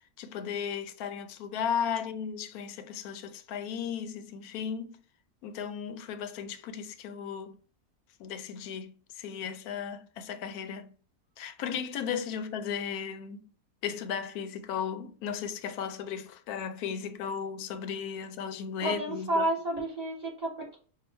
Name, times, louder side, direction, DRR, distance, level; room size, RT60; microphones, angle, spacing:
voice 1, 0.2-5.0 5.4-7.6 8.2-10.9 11.4-13.4 13.8-19.5, left 7 dB, 80° left, 1.1 m, -35 dB
voice 2, 18.8-20.8, right 1 dB, 25° right, 1.6 m, -31 dB
4.7 x 2.4 x 4.3 m
omnidirectional pair, 1.6 m